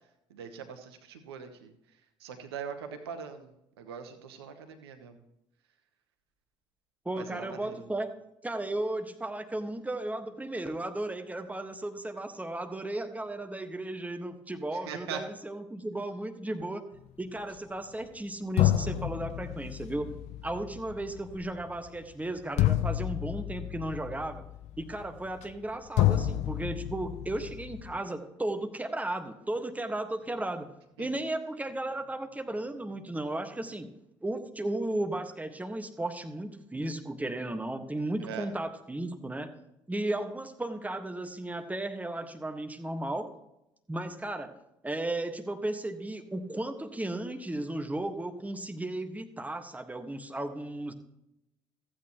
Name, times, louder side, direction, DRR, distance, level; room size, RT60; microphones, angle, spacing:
voice 1, 0.3-1.7 2.2-3.5 3.8-5.2 7.2-7.8 14.9-15.2 31.0-31.1 38.2-38.5, right 7 dB, 80° right, 7 dB, 0.9 m, -41 dB
voice 2, 7.0-8.1 8.4-16.9 17.2-20.1 20.4-24.4 24.8-30.7 31.0-33.9 34.2-39.5 39.9-43.3 43.9-44.6 44.8-50.9, right 1 dB, 10° right, 6 dB, 1.5 m, -35 dB
sound 1, 18.0-18.1 18.6-25.7 26.0-28.0, left 13 dB, 60° left, 0.6 m, -30 dB
15.0 x 8.6 x 3.0 m, 0.83 s
hypercardioid pair, 55°, 13 cm